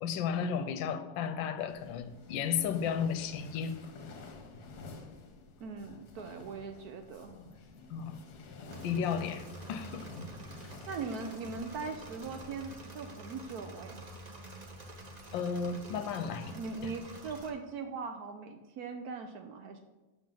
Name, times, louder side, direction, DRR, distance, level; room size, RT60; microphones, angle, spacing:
voice 1, 0.0-3.8 7.9-8.2 8.8-10.1 15.3-16.5, left 7 dB, 80° left, 9 dB, 1.3 m, -33 dB
sound 1, 1.7-12.9, left 3 dB, 60° left, 1.3 m, -50 dB
voice 2, 5.6-7.3 10.3-10.5 10.9-14.0 16.5-19.8, right 4 dB, 70° right, 6 dB, 0.9 m, -40 dB
Engine / Mechanisms, 8.7-17.5, right 1 dB, 45° right, 0.5 m, -48 dB
8.8 x 7.3 x 3.8 m, 1.1 s
omnidirectional pair, 2.1 m